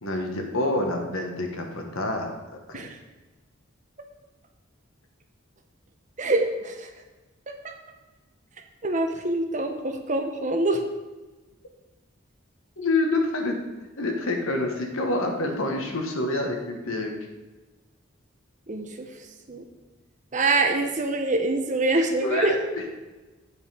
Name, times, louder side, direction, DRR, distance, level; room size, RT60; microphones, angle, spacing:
voice 1, 0.0-2.3 2.7-2.9 12.8-13.6 14.0-17.1 22.0-22.6, left 2 dB, 80° left, 3 dB, 1.3 m, -27 dB
voice 2, 6.2-6.9 7.5-7.7 8.8-10.8 18.7-19.1 19.5-19.6 20.3-22.6, right 2 dB, 35° right, 5 dB, 0.7 m, -25 dB
8.4 x 5.4 x 4.8 m, 1.2 s
head